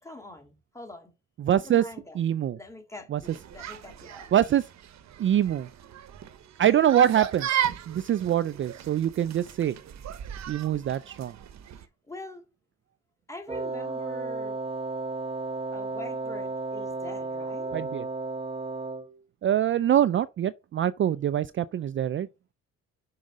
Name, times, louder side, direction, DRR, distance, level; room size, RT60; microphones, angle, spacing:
voice 1, 0.0-1.1 1.5-2.2 2.5-4.3 11.8-12.5 13.3-14.6 15.7-17.8, left 1 dB, 10° left, 2.1 m, -44 dB
voice 2, 1.4-1.8 2.2-2.6 3.1-3.2 4.3-4.6 5.2-5.7 6.6-7.5 7.9-9.8 10.5-11.3 17.7-18.0 19.4-22.3, right 10 dB, 40° right, 0.4 m, -24 dB
sound 1, 3.2-11.9, right 10 dB, 65° right, 0.9 m, -36 dB
Wind instrument woodwind instrument, 13.5-19.2, right 3 dB, 20° right, 0.9 m, -33 dB
6.4 x 4.8 x 5.0 m
cardioid pair, 90°, 30 cm